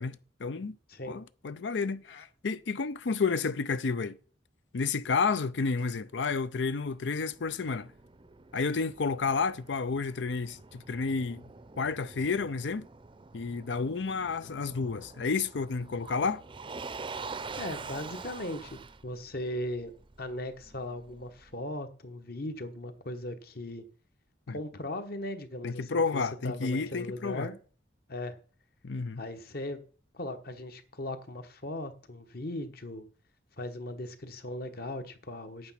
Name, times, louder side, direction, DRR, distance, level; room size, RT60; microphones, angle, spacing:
voice 1, 0.0-0.8 1.1-4.2 4.7-7.9 8.5-11.4 11.8-12.9 13.3-16.4 24.5-24.6 25.6-27.5 28.8-29.2, left 4 dB, 75° left, 0.5 m, -31 dB
Motor vehicle (road), 6.5-21.5, right 4 dB, 30° right, 0.6 m, -46 dB
voice 2, 17.6-19.9 20.2-23.8 24.5-27.6 28.1-28.4 29.2-29.8 30.1-33.0 33.6-35.7, left 1 dB, 55° left, 1.4 m, -38 dB
9.2 x 8.7 x 5.8 m
head